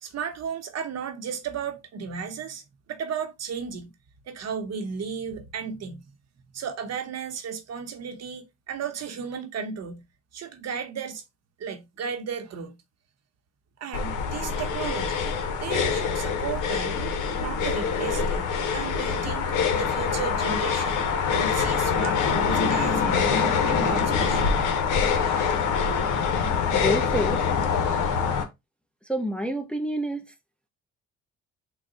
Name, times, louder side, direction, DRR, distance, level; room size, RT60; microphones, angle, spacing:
voice 1, 0.0-2.6 2.9-3.9 4.3-6.0 6.5-10.0 10.3-11.2 11.6-12.8 13.8-15.2 15.6-24.6, right 6 dB, 60° right, 0.9 m, -34 dB
sound 1, 13.9-28.4, left 6 dB, 85° left, 0.9 m, -25 dB
voice 2, 26.7-27.4 29.1-30.2, equal, 5° left, 0.6 m, -28 dB
3.9 x 2.2 x 3.7 m
cardioid pair, 90°, 30 cm